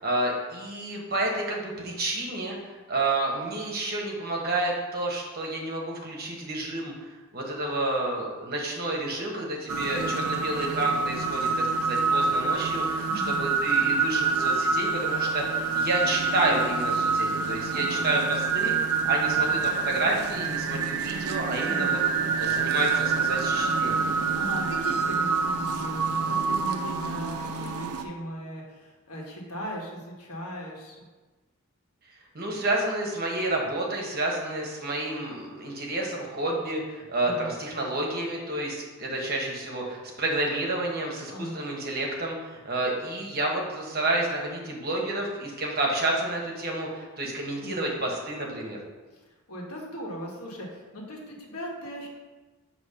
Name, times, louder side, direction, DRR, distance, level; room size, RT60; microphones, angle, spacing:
voice 1, 0.0-22.0 22.4-24.1 32.3-48.8, right 2 dB, 45° right, -1 dB, 1.1 m, -30 dB
sound 1, 9.7-28.0, right 5 dB, 90° right, 0.6 m, -26 dB
voice 2, 13.0-13.4 17.7-18.0 21.6-21.9 24.3-31.0 37.2-37.5 41.3-41.6 47.6-47.9 49.5-52.1, equal, 90° left, -2 dB, 1.4 m, -38 dB
6.6 x 3.0 x 5.6 m, 1.3 s
head